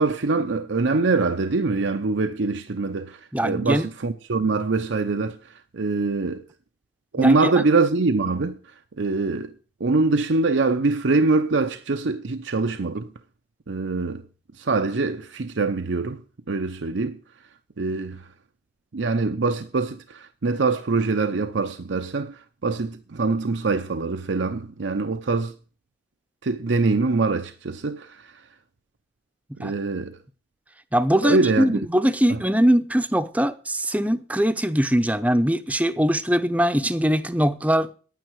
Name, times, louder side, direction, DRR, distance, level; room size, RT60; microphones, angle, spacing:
voice 1, 0.0-6.4 7.1-8.6 9.0-9.5 9.8-13.1 13.7-14.2 14.5-16.2 16.5-17.2 17.8-18.3 18.9-25.5 26.4-28.4 29.6-30.2 31.2-31.8 32.3-32.4, right 3 dB, 80° right, 0.7 m, -24 dB
voice 2, 3.3-3.9 7.2-7.6 29.6-29.7 30.9-37.9, equal, 10° right, 0.6 m, -21 dB
11.0 x 9.3 x 6.3 m
head